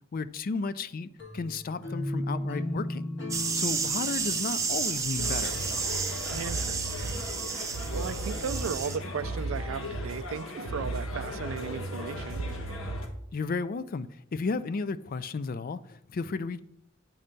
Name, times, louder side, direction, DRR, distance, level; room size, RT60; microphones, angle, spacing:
voice 1, 0.1-3.1 3.5-5.6 13.3-16.6, left 4 dB, 45° left, 0.4 m, -33 dB
sound 1, 1.2-6.1, left 1 dB, 65° left, 1.6 m, -36 dB
sound 2, 3.3-9.0, right 5 dB, 15° right, 0.6 m, -32 dB
sound 3, 5.2-13.1, equal, 80° left, 1.2 m, -35 dB
voice 2, 6.3-7.2 7.9-12.4, right 6 dB, 85° right, 0.4 m, -36 dB
8.6 x 4.4 x 5.2 m
head